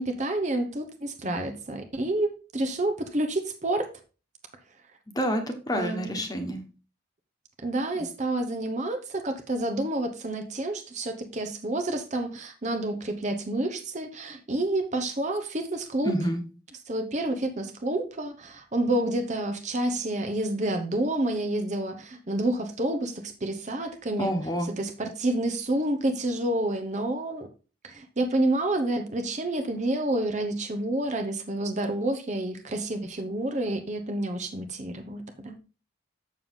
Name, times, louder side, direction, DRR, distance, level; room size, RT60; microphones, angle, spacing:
voice 1, 0.0-3.9 5.7-6.3 7.6-16.1 16.9-24.3 24.8-27.5 27.8-35.6, right 1 dB, 40° right, 0.9 m, -29 dB
voice 2, 5.1-6.6 16.0-16.4 24.2-24.7, equal, 20° left, 1.3 m, -28 dB
7.1 x 6.7 x 3.7 m
head